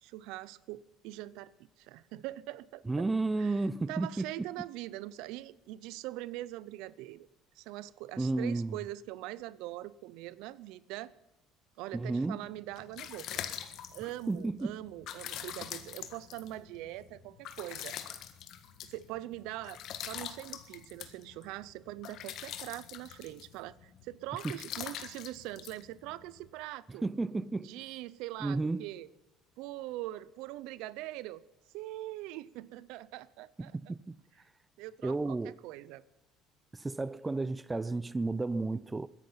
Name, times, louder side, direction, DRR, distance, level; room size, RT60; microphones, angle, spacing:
voice 1, 0.0-1.5 1.8-3.1 3.4-3.5 3.9-7.3 7.6-11.1 11.8-13.4 13.9-18.0 18.8-27.0 27.6-29.1 29.6-31.4 31.7-33.8 34.8-36.0, right 16 dB, 80° right, 0.6 m, -42 dB
voice 2, 2.9-4.4 8.2-8.8 11.9-12.4 14.3-14.8 24.4-24.6 27.0-27.7 28.4-28.9 33.7-34.2 35.0-35.6 36.7-39.1, right 3 dB, 15° right, 0.6 m, -32 dB
sound 1, 12.5-26.5, left 10 dB, 65° left, 1.6 m, -44 dB
21.5 x 10.5 x 5.7 m
supercardioid pair, 90°, 0 cm